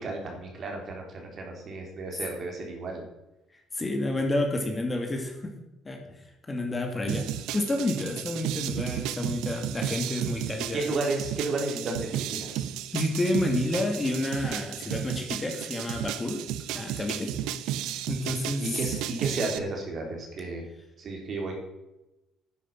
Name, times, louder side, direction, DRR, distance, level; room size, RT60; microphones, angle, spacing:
voice 1, 0.0-3.0 10.7-12.7 18.6-20.6 21.0-21.6, right 3 dB, 45° right, 1 dB, 3.7 m, -33 dB
voice 2, 3.7-5.3 5.8-6.2 6.5-10.9 12.9-16.4 16.7-17.3 18.1-18.8, left 1 dB, 20° left, 2 dB, 2.4 m, -29 dB
sound 1, 7.1-19.6, right 11 dB, 90° right, 0.7 m, -34 dB
10.5 x 9.3 x 6.0 m, 0.94 s
cardioid pair, 125°, 0 cm